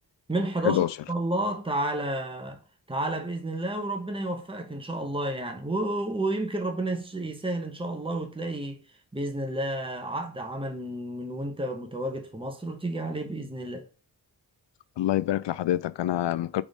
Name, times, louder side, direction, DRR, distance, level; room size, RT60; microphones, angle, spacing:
voice 1, 0.3-2.6 2.9-8.8 9.1-13.8, right 1 dB, 10° right, 1.5 m, -31 dB
voice 2, 15.0-16.6, left 13 dB, 80° left, 0.5 m, -26 dB
4.7 x 4.1 x 5.2 m
cardioid pair, 50°, 42 cm